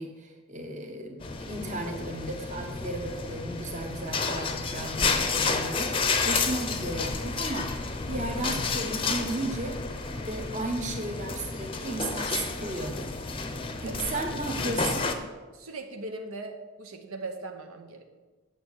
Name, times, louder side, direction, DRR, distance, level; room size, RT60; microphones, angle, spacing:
voice 1, 0.0-5.9 6.3-7.7 8.1-9.8 10.2-13.1 13.8-15.1, right 2 dB, 35° right, 3 dB, 1.3 m, -34 dB
sound 1, 1.2-15.1, left 4 dB, 25° left, 0.7 m, -31 dB
voice 2, 13.8-14.2 15.5-18.0, right 2 dB, 75° right, 5 dB, 0.9 m, -39 dB
9.4 x 6.6 x 6.4 m, 1.3 s
head